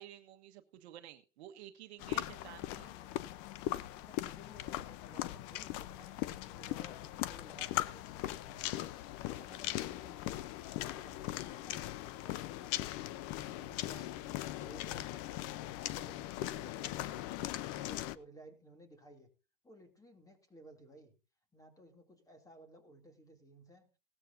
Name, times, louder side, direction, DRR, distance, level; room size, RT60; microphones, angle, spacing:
voice 1, 0.0-2.9 17.7-17.8, right 13 dB, 60° right, 7 dB, 1.4 m, -52 dB
sound 1, 2.0-18.2, left 15 dB, 40° left, 0.8 m, -40 dB
voice 2, 2.3-3.2 3.5-8.9 9.2-10.5 10.9-12.8 13.2-16.2 16.5-17.4 17.7-19.3 19.6-21.1 21.5-23.9, equal, 10° left, 6 dB, 2.7 m, -58 dB
17.5 x 13.0 x 2.7 m, 0.31 s
hypercardioid pair, 120°, 36 cm